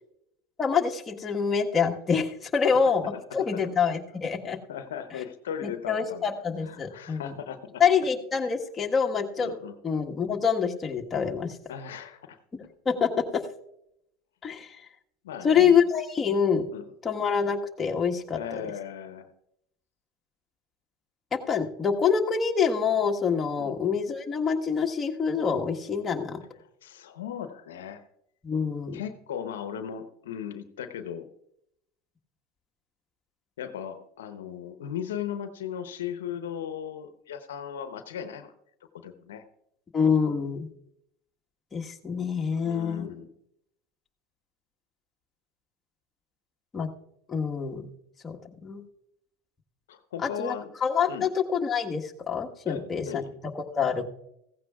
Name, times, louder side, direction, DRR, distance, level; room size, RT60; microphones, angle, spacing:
voice 1, 0.6-4.6 5.9-7.3 7.8-9.5 9.8-11.5 12.8-13.4 14.4-14.7 15.4-16.7 17.0-18.4 21.3-26.4 28.4-29.0 39.9-40.7 41.7-43.1 46.7-46.9 47.3-47.8 48.2-48.8 50.2-50.5 50.8-53.2 53.7-54.0, left 6 dB, 25° left, 1 dB, 1.5 m, -26 dB
voice 2, 3.3-3.7 4.7-6.3 6.6-7.8 9.4-9.8 11.7-12.4 15.2-15.8 16.7-16.8 18.3-19.3 23.6-23.7 26.6-28.0 28.9-31.3 33.6-38.5 38.9-39.4 42.6-43.3 49.9-50.7 51.1-51.3 52.7-53.4, left 8 dB, 85° left, 8 dB, 0.9 m, -37 dB
15.5 x 15.5 x 2.4 m, 0.77 s
hypercardioid pair, 90°, 0 cm